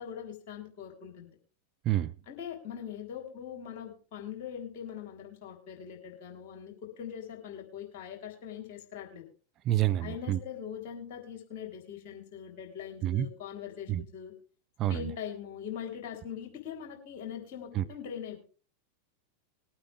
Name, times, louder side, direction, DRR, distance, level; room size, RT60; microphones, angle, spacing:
voice 1, 0.0-1.3 2.3-9.2 10.0-14.3 14.9-18.4, left 8 dB, 45° left, 3.9 m, -42 dB
voice 2, 9.6-10.4 13.0-13.3 13.9-14.0 14.8-15.1 17.7-17.8, right 13 dB, 35° right, 0.7 m, -28 dB
20.5 x 8.9 x 3.5 m
figure-of-eight pair, 90°, 0 cm